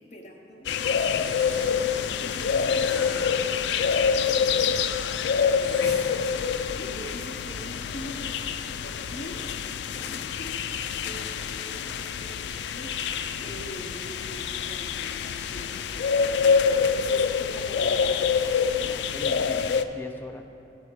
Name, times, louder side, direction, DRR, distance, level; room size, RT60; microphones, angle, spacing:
voice 1, 0.1-9.4 9.9-10.6 10.8-18.5 19.5-19.8, left 1 dB, 40° left, 0 dB, 0.9 m, -43 dB
sound 1, 0.6-19.8, left 6 dB, 75° left, 0.3 m, -26 dB
Breathing, 0.8-1.8 2.6-3.3 4.1-6.0, right 1 dB, 60° right, 1.5 m, -43 dB
voice 2, 18.8-20.4, left 1 dB, 10° left, 4 dB, 0.4 m, -41 dB
9.5 x 4.9 x 6.9 m, 2.8 s
head